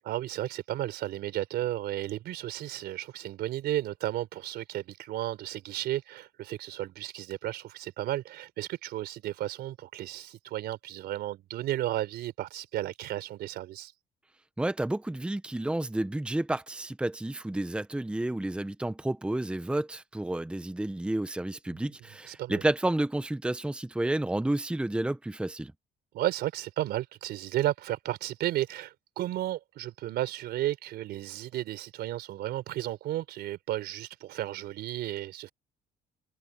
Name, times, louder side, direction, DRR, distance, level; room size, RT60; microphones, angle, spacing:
voice 1, 0.0-13.9 21.7-21.8 22.2-22.6 26.1-35.5, right 14 dB, 75° right, 4.0 m, -33 dB
voice 2, 14.6-25.7, right 1 dB, 5° right, 0.9 m, -30 dB
cardioid pair, 110°, 17 cm